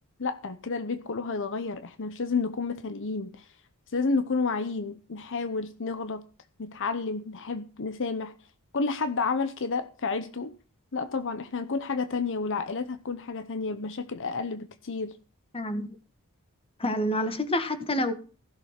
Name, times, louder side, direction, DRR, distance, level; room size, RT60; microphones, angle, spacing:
voice 1, 0.2-3.5 3.9-6.2 6.6-8.3 8.7-10.5 10.9-15.2, left 4 dB, 60° left, 0.8 m, -30 dB
voice 2, 15.5-15.9 16.8-18.1, left 1 dB, 25° left, 1.5 m, -27 dB
15.5 x 6.8 x 5.9 m
head